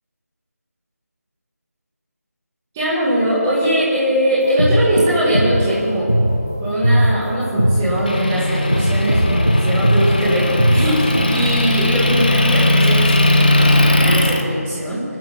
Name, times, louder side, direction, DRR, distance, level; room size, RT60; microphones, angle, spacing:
voice 1, 2.7-6.1 6.6-15.0, equal, 5° right, -9 dB, 2.3 m, -20 dB
sound 1, 4.4-11.4, right 1 dB, 10° left, 0.4 m, -19 dB
Motor vehicle (road) / Engine, 8.1-14.4, left 1 dB, 30° left, 1.1 m, -17 dB
24.5 x 9.7 x 6.0 m, 2.5 s
figure-of-eight pair, 175°, 9 cm